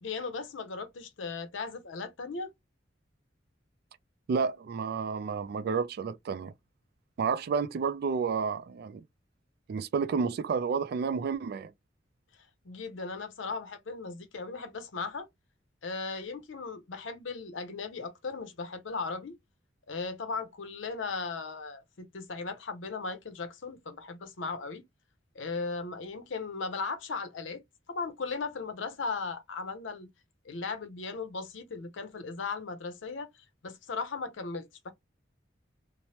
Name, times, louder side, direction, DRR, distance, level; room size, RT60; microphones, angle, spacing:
voice 1, 0.0-2.5 12.6-15.3 15.8-19.4 19.9-24.8 25.3-27.6 27.9-30.1 30.4-34.9, left 4 dB, 85° left, 0.6 m, -37 dB
voice 2, 4.3-6.5 7.2-9.0 9.7-11.7, right 5 dB, 55° right, 0.3 m, -30 dB
3.1 x 2.1 x 2.8 m
head